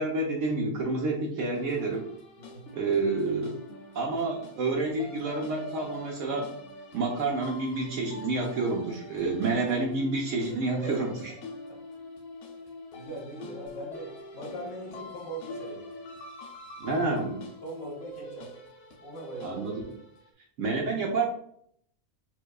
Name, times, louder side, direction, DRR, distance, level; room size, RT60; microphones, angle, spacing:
voice 1, 0.0-2.1 2.7-3.5 3.9-6.5 6.9-11.3 16.8-17.4 19.4-19.7 20.6-21.3, right 3 dB, 65° right, 1 dB, 0.9 m, -29 dB
sound 1, 1.5-20.3, left 2 dB, 80° left, 0.5 m, -44 dB
voice 2, 10.7-11.1 12.9-15.8 17.6-18.5 19.0-19.6, right 1 dB, 45° left, -3 dB, 1.1 m, -41 dB
4.5 x 2.3 x 2.3 m, 0.65 s
omnidirectional pair, 1.6 m